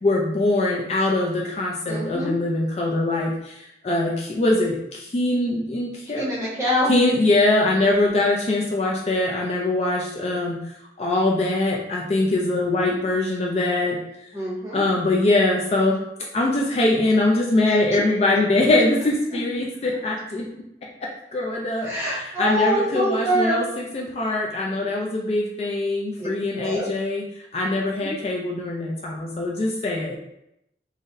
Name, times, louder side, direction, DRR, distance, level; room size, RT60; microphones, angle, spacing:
voice 1, 0.0-6.3 6.9-10.6 11.0-14.0 14.7-16.0 16.3-20.5 21.3-27.2 27.5-30.2, left 2 dB, 35° left, -2 dB, 0.3 m, -22 dB
voice 2, 1.9-2.3 6.1-6.9 14.3-14.8 17.7-17.8 21.8-23.6 26.2-26.3 26.6-26.9 28.0-28.1, equal, 15° right, -6 dB, 0.8 m, -24 dB
3.9 x 2.0 x 2.6 m, 0.82 s
head